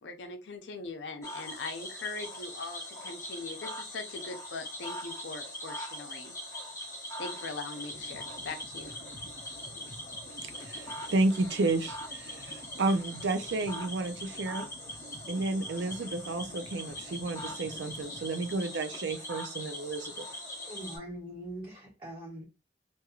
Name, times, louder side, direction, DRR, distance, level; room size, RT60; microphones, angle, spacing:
voice 1, 0.0-6.3 7.2-8.9, left 3 dB, 85° left, 0.6 m, -41 dB
Cricket / Frog, 1.2-21.0, left 1 dB, 15° left, 1.0 m, -41 dB
sound 1, 7.9-18.6, equal, 45° left, 0.7 m, -51 dB
voice 2, 10.6-14.7 15.3-20.2, right 2 dB, 80° right, 0.5 m, -31 dB
voice 3, 20.7-22.5, right 1 dB, 30° right, 1.3 m, -42 dB
2.9 x 2.5 x 2.4 m
head